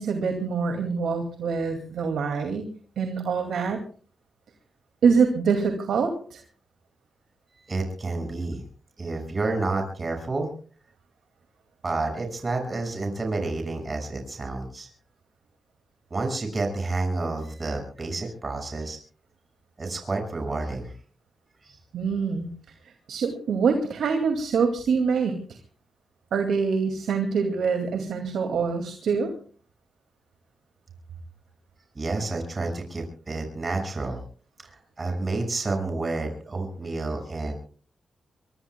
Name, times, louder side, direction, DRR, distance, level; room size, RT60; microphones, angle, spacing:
voice 1, 0.0-3.8 5.0-6.4 21.9-22.5 22.8-25.4 26.3-29.3, right 5 dB, 85° right, 5 dB, 2.3 m, -25 dB
voice 2, 7.7-8.6 9.0-10.5 11.8-14.9 16.1-19.0 19.8-20.9 21.6-21.8 31.9-34.2 34.6-37.5, right 3 dB, 35° right, 4 dB, 6.0 m, -29 dB
24.0 x 23.5 x 2.3 m, 0.41 s
cardioid pair, 75°, 0 cm